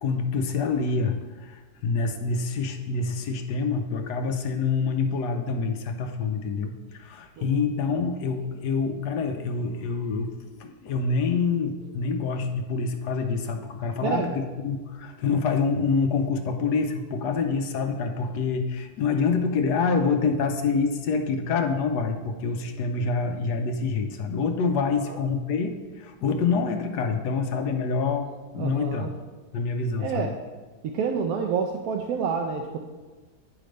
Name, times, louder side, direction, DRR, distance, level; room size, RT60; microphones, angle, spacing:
voice 1, 0.0-10.3 10.6-28.3 28.5-29.1 29.5-30.4, left 4 dB, 85° left, 5 dB, 1.3 m, -26 dB
voice 2, 14.0-14.4 25.1-25.2 28.6-29.1 30.0-30.3 30.8-32.8, right 6 dB, 75° right, 3 dB, 1.0 m, -28 dB
9.4 x 3.2 x 5.1 m, 1.3 s
omnidirectional pair, 1.7 m